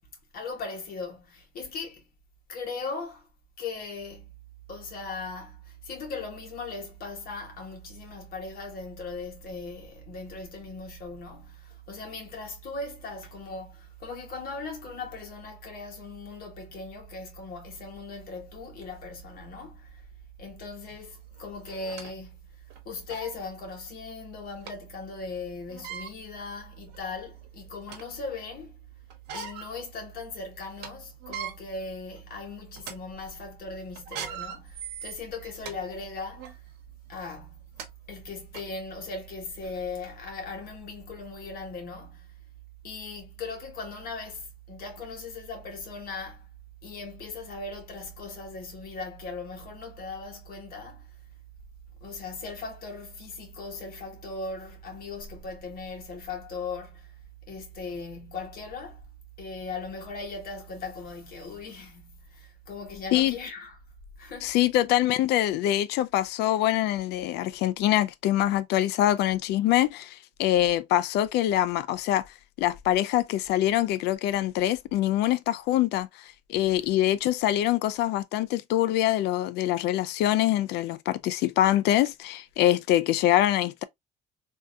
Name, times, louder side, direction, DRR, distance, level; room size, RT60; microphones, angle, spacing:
voice 1, 0.3-2.1 2.5-3.3 3.6-4.3 4.7-20.1 20.4-28.7 29.3-36.6 37.1-37.7 38.1-42.3 42.8-46.5 46.8-51.1 52.0-57.2 57.5-59.0 59.4-63.8 64.2-64.6 76.7-76.9, left 3 dB, 60° left, 1.6 m, -39 dB
sound 1, 20.9-21.0 21.7-22.1 22.7-22.8 23.1-23.3 24.7-24.8 25.7-26.1 26.9-27.0 27.4-28.1 29.1-29.7 30.1-30.2 30.6-30.9 31.2-31.5 32.2-32.4 32.8-32.9 34.0-35.7 36.4-36.5 37.4-37.5 37.8-37.9 38.5-38.6, right 7 dB, 85° right, 1.0 m, -39 dB
voice 2, 64.4-72.3 72.6-76.1 76.5-83.8, left 13 dB, 80° left, 0.4 m, -24 dB
3.4 x 2.7 x 2.4 m
cardioid pair, 110°, 17 cm